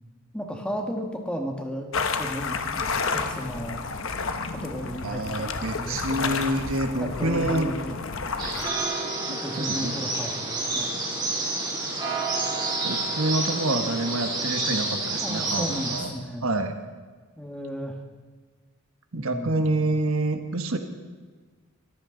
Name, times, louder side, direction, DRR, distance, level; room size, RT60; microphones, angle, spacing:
voice 1, 0.3-2.9 3.1-3.9 4.5-6.4 7.0-7.9 8.3-8.7 9.4-11.0 15.2-16.5 17.4-18.0 19.1-19.6, equal, 5° left, 2 dB, 1.7 m, -34 dB
sound 1, 1.9-8.7, left 4 dB, 65° left, 1.0 m, -30 dB
voice 2, 5.0-7.7 9.3-9.9 12.8-16.1 16.4-16.7 19.1-20.8, right 2 dB, 70° right, 6 dB, 1.3 m, -27 dB
sound 2, 8.4-16.0, right 2 dB, 20° right, 3.2 m, -29 dB
23.5 x 14.5 x 3.9 m, 1.4 s
head